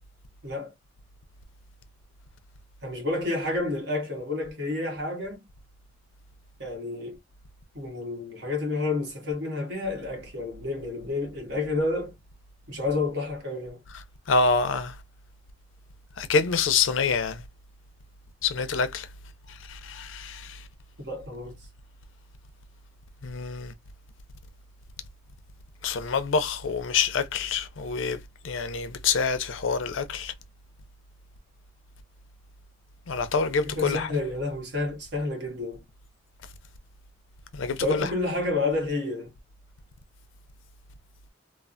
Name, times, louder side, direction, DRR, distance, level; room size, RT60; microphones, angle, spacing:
voice 1, 0.4-0.7 2.8-5.4 6.6-7.2 7.7-12.1 12.7-13.8 21.0-21.6 33.6-35.8 37.7-39.3, left 2 dB, 60° right, 1.2 m, -30 dB
voice 2, 14.3-14.9 16.2-17.4 18.4-19.1 19.7-20.5 23.2-23.7 25.8-28.2 28.4-30.3 33.1-34.1 37.5-38.1, left 5 dB, 85° left, 0.5 m, -26 dB
3.2 x 2.0 x 2.5 m
head